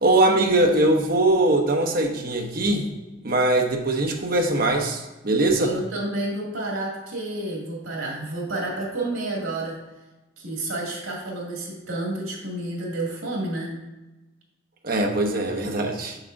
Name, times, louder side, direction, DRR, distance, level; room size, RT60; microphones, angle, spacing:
voice 1, 0.0-2.9 3.2-5.8 14.8-16.2, right 2 dB, 45° right, 2 dB, 0.8 m, -21 dB
voice 2, 5.6-9.8 10.4-13.7, right 1 dB, 85° right, -2 dB, 2.3 m, -30 dB
7.1 x 6.8 x 2.6 m, 1.1 s
head